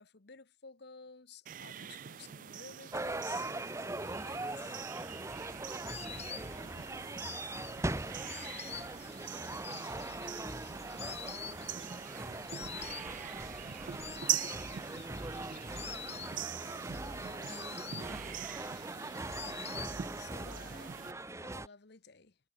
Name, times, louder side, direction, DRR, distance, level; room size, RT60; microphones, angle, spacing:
voice 1, 0.0-3.5 4.0-4.8 20.2-21.0 21.3-22.4, left 5 dB, 55° left, 1.1 m, -54 dB
sound 1, 1.5-21.1, right 10 dB, 40° right, 0.3 m, -43 dB
sound 2, 2.9-21.7, right 2 dB, 15° right, 1.0 m, -41 dB
Insect, 4.7-20.4 20.7-21.5, left 9 dB, 30° left, 1.2 m, -48 dB
voice 2, 11.2-12.6 13.1-14.2, right 2 dB, 60° right, 4.8 m, -65 dB
head